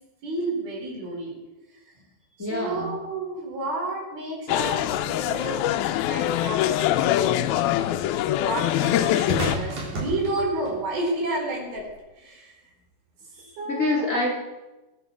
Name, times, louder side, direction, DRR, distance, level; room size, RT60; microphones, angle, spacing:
voice 1, 0.2-1.4 1.9-2.0 2.4-7.9 8.4-11.9 12.2-12.7 13.3-14.1, right 2 dB, 90° right, -1 dB, 6.3 m, -31 dB
voice 2, 2.4-2.9 13.7-14.4, left 1 dB, 20° left, -2 dB, 3.3 m, -26 dB
sound 1, 4.5-9.6, left 12 dB, 90° left, 2.5 m, -23 dB
sound 2, 6.0-6.1 8.9-10.8 11.7-11.9, right 2 dB, 55° right, 5.0 m, -32 dB
21.0 x 9.4 x 6.2 m, 1.1 s
omnidirectional pair, 4.2 m